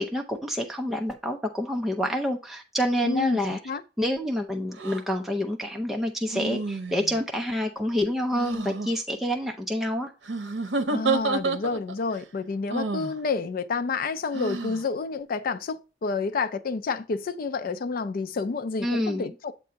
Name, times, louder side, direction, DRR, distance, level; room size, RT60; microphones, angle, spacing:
voice 1, 0.0-3.6 4.0-10.1 18.8-19.3, equal, ahead, 0.5 m, -28 dB
voice 2, 3.0-3.8 10.9-19.5, left 4 dB, 55° left, 0.4 m, -29 dB
sound 1, 4.8-5.0 6.3-7.2 8.3-8.9 10.2-12.0 12.7-13.1 14.3-14.8, right 3 dB, 85° right, 0.7 m, -29 dB
7.4 x 2.6 x 5.6 m
head